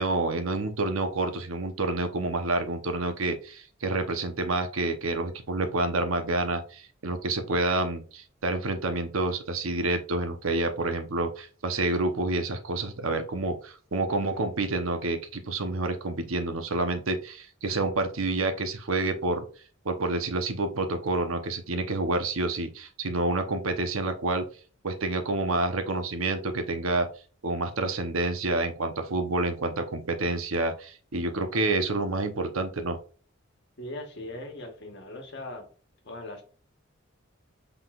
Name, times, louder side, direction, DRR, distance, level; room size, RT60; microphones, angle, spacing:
voice 1, 0.0-19.4 19.8-24.5 24.8-27.1 27.4-33.0, right 2 dB, 90° right, 7 dB, 0.9 m, -28 dB
voice 2, 33.8-35.7 36.0-36.4, left 1 dB, 60° left, 4 dB, 1.2 m, -39 dB
6.0 x 3.6 x 2.4 m, 0.38 s
head